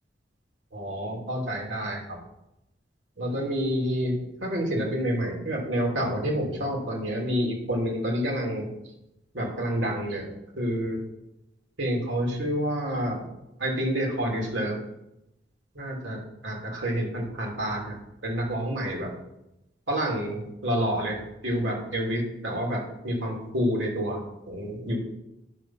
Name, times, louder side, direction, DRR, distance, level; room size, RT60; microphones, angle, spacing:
voice 1, 0.7-2.2 3.2-8.7 9.3-10.3 10.5-11.0 11.8-13.3 13.6-14.8 15.7-18.0 18.2-19.1 19.9-25.0, equal, 85° right, -1 dB, 3.0 m, -28 dB
10.5 x 5.7 x 5.8 m, 0.88 s
head